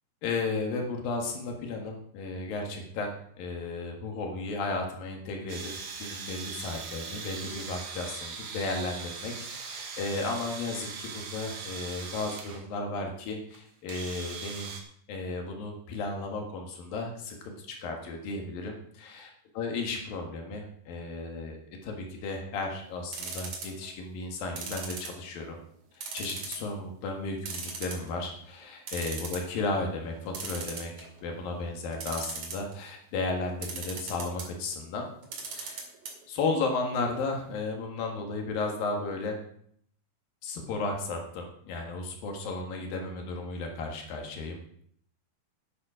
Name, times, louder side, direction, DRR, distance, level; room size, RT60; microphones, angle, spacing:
voice 1, 0.2-3.1 3.4-5.7 6.0-14.7 15.1-25.6 25.9-35.1 35.5-35.8 36.3-39.4 40.4-44.6, left 3 dB, 90° left, 2 dB, 3.5 m, -34 dB
sound 1, 5.5-12.6 13.5-13.6 13.9-14.8, right 5 dB, 85° right, 3.4 m, -40 dB
sound 2, 23.1-23.9 24.6-25.5 26.0-26.7 27.0-27.1 27.5-28.3 28.6-28.7 28.9-29.5 30.3-31.2 31.9-32.8 33.6-34.5 35.2-36.1 36.4-36.5 36.8-36.9, right 5 dB, 55° right, 3.2 m, -37 dB
11.0 x 9.9 x 5.0 m, 0.65 s
omnidirectional pair, 3.9 m